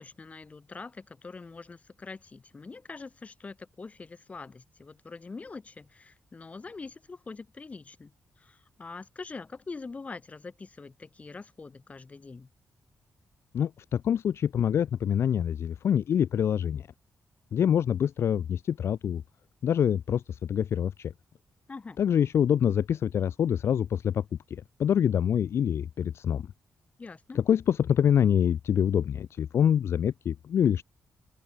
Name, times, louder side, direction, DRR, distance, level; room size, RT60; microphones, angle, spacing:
voice 1, 0.0-8.1 8.4-12.5 21.7-22.0 27.0-27.4, left 4 dB, 25° left, 2.7 m, -44 dB
voice 2, 13.5-16.9 17.5-19.2 19.6-21.1 22.0-24.2 24.5-26.5 27.3-30.8, left 9 dB, 60° left, 0.4 m, -25 dB
wide cardioid pair, 145°, 5 cm